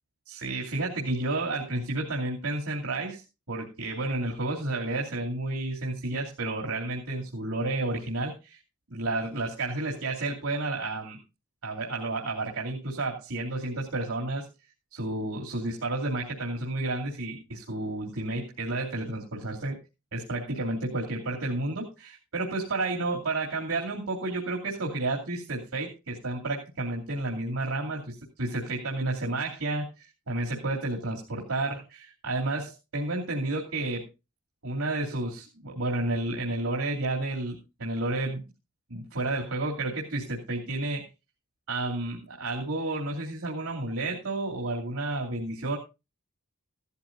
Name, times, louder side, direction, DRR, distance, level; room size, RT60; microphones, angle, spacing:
voice 1, 0.3-8.6 8.9-11.2 11.6-14.5 14.9-19.8 20.1-34.1 34.6-38.4 38.9-41.1 41.7-45.8, right 2 dB, 90° right, -2 dB, 2.8 m, -31 dB
15.5 x 13.0 x 2.6 m, 0.27 s
head